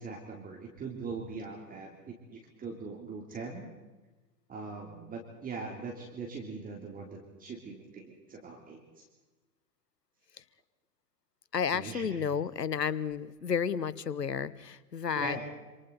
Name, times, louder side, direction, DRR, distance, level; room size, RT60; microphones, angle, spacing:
voice 1, 0.0-3.7 4.5-9.0 11.7-12.2 15.1-15.4, right 4 dB, 15° right, 0 dB, 3.2 m, -41 dB
voice 2, 11.5-15.4, left 7 dB, 80° left, 20 dB, 1.1 m, -32 dB
27.5 x 27.0 x 4.1 m, 1.2 s
figure-of-eight pair, 100°, 48 cm